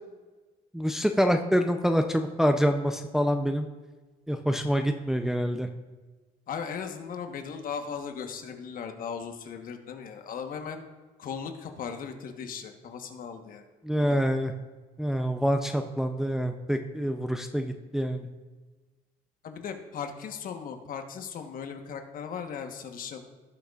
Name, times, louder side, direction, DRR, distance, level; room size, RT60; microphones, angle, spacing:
voice 1, 0.7-3.7 4.3-5.7 13.8-14.5 15.0-18.2, equal, ahead, 5 dB, 0.5 m, -26 dB
voice 2, 6.5-10.8 11.2-13.7 14.0-14.2 19.4-23.2, left 6 dB, 55° left, 6 dB, 1.2 m, -37 dB
17.5 x 6.5 x 2.4 m, 1.3 s
cardioid pair, 110°, 17 cm